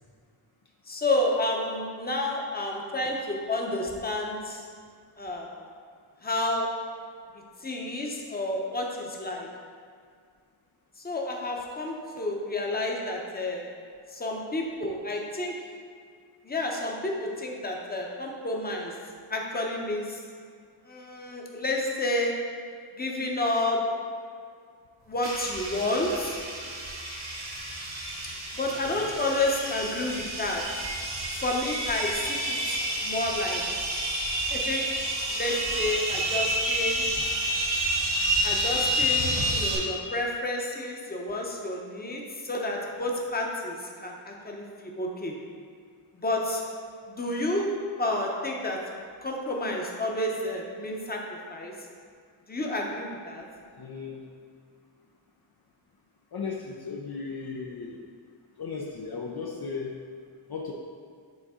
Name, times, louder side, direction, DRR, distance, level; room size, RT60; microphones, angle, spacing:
voice 1, 0.9-4.6 5.2-5.7 6.2-6.7 7.6-9.5 11.0-13.7 14.1-15.5 16.4-18.9 19.3-20.2 20.8-22.3 22.9-23.8 25.1-26.4 28.5-30.6 31.3-33.6 34.5-34.8 35.3-37.1 38.4-45.3 46.2-46.6 47.1-47.7 48.0-48.8 49.2-51.7 52.5-53.5, left 1 dB, 20° left, -1 dB, 0.8 m, -30 dB
sound 1, 25.2-39.8, right 1 dB, 70° right, 1.7 m, -29 dB
voice 2, 53.8-54.2 56.3-58.0 58.6-60.0 60.5-60.7, left 5 dB, 50° left, -1 dB, 0.6 m, -36 dB
8.7 x 3.9 x 3.7 m, 2.1 s
wide cardioid pair, 115°, 48 cm